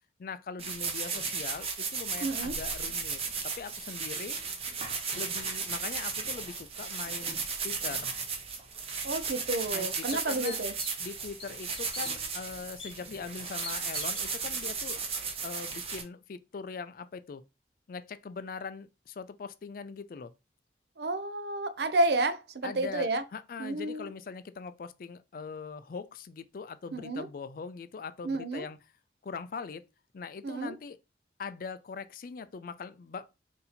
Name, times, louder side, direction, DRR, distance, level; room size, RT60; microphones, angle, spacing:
voice 1, 0.2-4.4 5.1-8.1 9.7-10.7 11.0-15.0 15.4-17.4 17.9-20.3 22.6-28.8 29.2-29.8 30.1-31.0 31.4-33.3, left 5 dB, 50° left, 0.4 m, -41 dB
sound 1, 0.6-16.0, right 5 dB, 35° right, 0.9 m, -35 dB
voice 2, 2.2-2.5 9.0-10.7 21.0-23.2 23.6-24.1 26.9-27.3 28.2-28.6 30.4-30.7, right 2 dB, 65° right, 0.6 m, -30 dB
sound 2, 10.1-11.1 11.4-12.1 12.8-12.9 13.6-14.3, left 3 dB, 30° left, 1.0 m, -42 dB
4.0 x 2.7 x 4.1 m
head